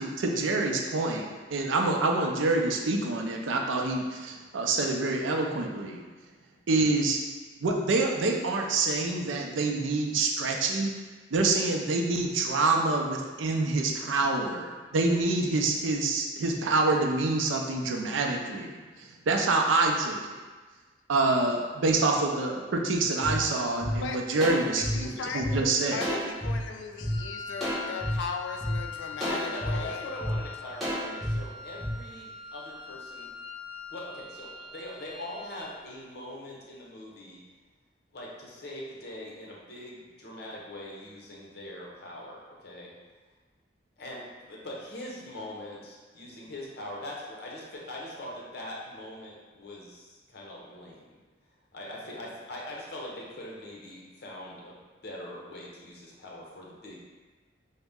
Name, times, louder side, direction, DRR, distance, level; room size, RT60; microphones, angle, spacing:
voice 1, 0.0-6.0 6.7-7.2 7.6-10.9 11.3-20.4 21.1-26.0, right 3 dB, 90° right, 2 dB, 0.5 m, -27 dB
sound 1, 23.2-23.3 23.8-23.9 24.4-25.5 26.0-26.5 27.0-27.1 27.6-28.1 28.6-28.7 29.2-29.7 30.2-30.3 30.8-31.3 31.8-31.9, equal, ahead, 1.0 m, -31 dB
voice 2, 23.8-24.2 24.7-25.6 25.9-30.0, left 5 dB, 75° left, 4 dB, 0.3 m, -37 dB
Wind instrument woodwind instrument, 26.9-35.8, left 5 dB, 25° right, 0.5 m, -42 dB
voice 3, 29.2-33.3 33.9-37.4 38.1-42.9 44.0-51.2 51.7-54.8 55.0-57.1, left 1 dB, 55° left, -3 dB, 0.7 m, -42 dB
3.8 x 2.1 x 3.5 m, 1.3 s
head